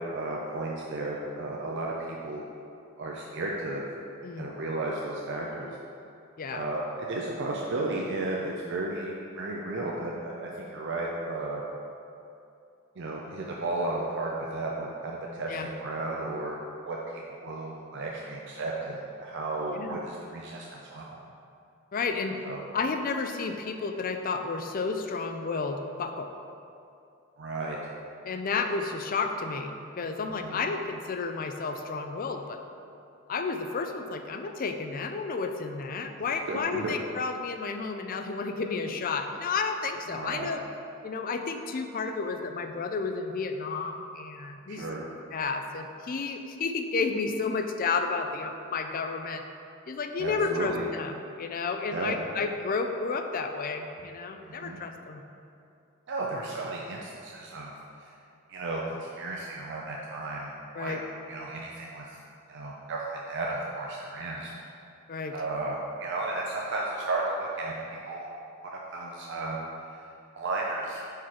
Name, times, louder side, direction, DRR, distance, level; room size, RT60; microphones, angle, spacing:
voice 1, 0.0-2.4 3.0-3.8 4.4-5.7 6.5-11.6 13.0-16.6 16.8-21.2 22.4-22.6 27.4-27.8 30.4-30.7 36.5-36.9 40.1-40.5 44.7-45.0 50.2-50.9 51.9-52.2 54.4-54.8 56.1-57.7 58.0-58.1 58.5-60.5 60.8-61.0 61.3-62.2 62.5-64.5 65.3-68.3 68.6-69.6 70.4-71.0, right 2 dB, 60° right, -2 dB, 0.5 m, -34 dB
voice 2, 6.4-6.7 15.5-15.7 19.7-20.0 21.9-22.4 22.7-26.3 28.2-32.6 33.3-40.6 41.0-44.9 45.3-49.4 49.9-55.2 60.7-61.0 65.1-65.3, left 4 dB, 40° left, 6 dB, 0.4 m, -31 dB
4.8 x 4.7 x 5.8 m, 2.6 s
head